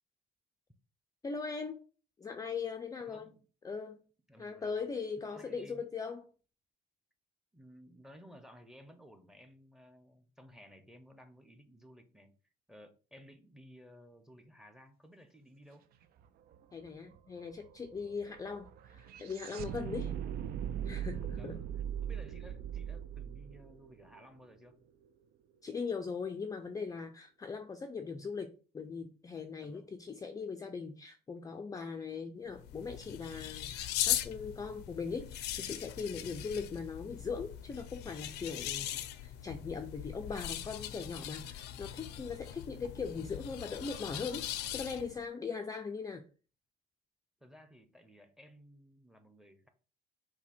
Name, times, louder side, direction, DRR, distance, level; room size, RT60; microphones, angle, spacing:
voice 1, 1.2-1.8 2.2-3.3 3.6-4.0 4.4-6.3 16.7-20.1 20.8-21.6 25.6-46.2, left 5 dB, 20° left, 0.4 m, -40 dB
voice 2, 3.0-3.4 4.3-4.7 5.2-5.9 7.5-12.3 12.7-15.9 20.1-20.2 21.3-21.7 22.0-24.8 27.5-27.6 29.6-30.0 47.4-49.7, equal, ahead, 0.8 m, -56 dB
sound 1, 16.2-16.3 16.5-24.7, right 9 dB, 65° right, 0.4 m, -40 dB
sound 2, 32.5-45.2, left 12 dB, 85° left, 0.5 m, -40 dB
5.7 x 2.2 x 4.3 m
cardioid pair, 110°, 17 cm